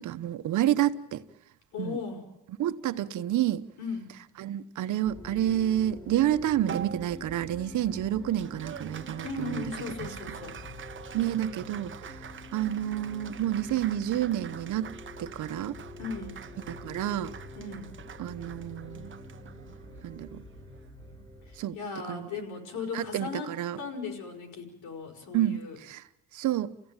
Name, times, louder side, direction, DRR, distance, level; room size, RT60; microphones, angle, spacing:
voice 1, 0.1-1.2 1.8-2.0 2.6-3.7 4.4-9.7 10.0-10.1 11.1-12.2 12.5-15.8 16.7-17.3 18.2-19.1 20.0-20.4 21.6-21.8 22.1-22.3 22.9-23.8 25.3-26.0 26.3-26.7, right 12 dB, 75° right, 1.1 m, -29 dB
voice 2, 1.7-2.2 3.8-4.1 9.2-10.6 16.0-16.4 17.6-17.9 21.5-23.5 23.8-25.8, left 4 dB, 85° left, 5.2 m, -37 dB
sound 1, 5.0-21.6, left 1 dB, 15° left, 3.8 m, -46 dB
Applause, 6.7-21.3, right 8 dB, 40° right, 1.0 m, -45 dB
30.0 x 16.0 x 9.0 m
cardioid pair, 90°, 30 cm